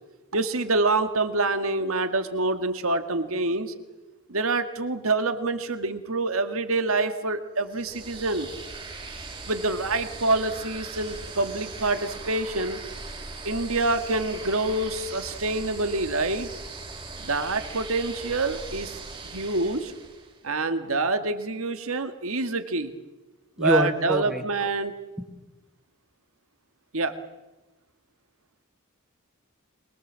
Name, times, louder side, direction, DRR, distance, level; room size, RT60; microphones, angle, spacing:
voice 1, 0.3-3.7 4.3-8.5 9.5-12.8 13.4-16.5 17.2-19.9 20.4-22.9 23.6-24.9 26.9-27.2, right 2 dB, 75° right, 8 dB, 1.9 m, -26 dB
sound 1, 7.7-20.4, right 3 dB, 25° right, 3.4 m, -40 dB
voice 2, 23.6-24.4 25.2-25.3, right 1 dB, 5° right, 6 dB, 2.0 m, -25 dB
24.0 x 23.0 x 7.6 m, 1.1 s
head